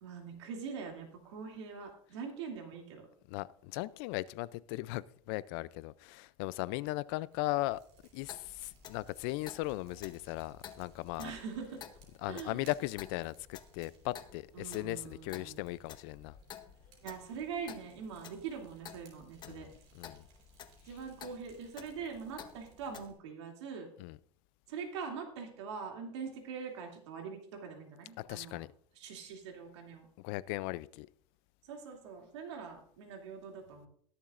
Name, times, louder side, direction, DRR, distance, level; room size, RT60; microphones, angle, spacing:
voice 1, 0.0-3.1 11.2-11.8 12.3-12.7 14.5-15.6 17.0-19.7 20.8-23.9 24.7-28.6 29.0-30.1 31.6-33.9, right 6 dB, 90° right, 2.7 m, -43 dB
voice 2, 3.3-7.8 8.1-11.3 12.2-16.4 19.5-20.3 24.0-24.2 28.2-28.7 30.2-31.1, left 18 dB, 60° left, 0.4 m, -38 dB
Fire, 6.9-23.1, right 4 dB, 50° right, 4.1 m, -64 dB
Clock, 8.2-23.1, left 9 dB, 30° left, 0.9 m, -53 dB
21.0 x 7.2 x 2.5 m
supercardioid pair, 145°, 14 cm